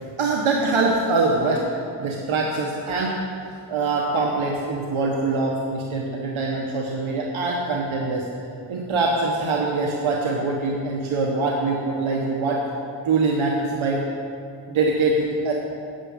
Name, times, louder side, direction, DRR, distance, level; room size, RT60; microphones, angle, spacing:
voice 1, 0.0-1.6 2.0-3.1 3.7-8.3 8.7-12.6 13.0-14.0 14.7-15.5, right 3 dB, 90° right, -1 dB, 1.3 m, -23 dB
9.6 x 7.4 x 8.9 m, 2.5 s
wide cardioid pair, 135°, 47 cm